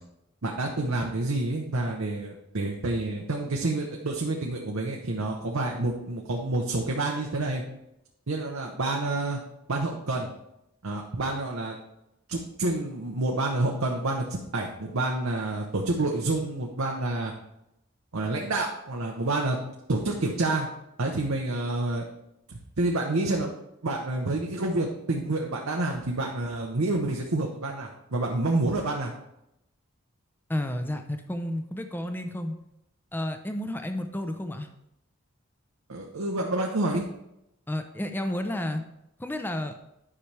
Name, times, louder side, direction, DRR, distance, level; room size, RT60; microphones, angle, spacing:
voice 1, 0.4-7.6 8.3-9.4 9.7-10.3 10.8-11.8 12.3-17.3 18.1-19.6 19.9-20.7 21.0-22.1 22.5-23.5 23.8-29.1 35.9-37.1, right 2 dB, 80° right, 0 dB, 0.9 m, -28 dB
voice 2, 30.5-32.5 33.1-34.7 37.7-38.8 39.2-39.7, left 1 dB, 10° left, 7 dB, 0.5 m, -31 dB
9.8 x 5.8 x 3.3 m, 0.84 s
head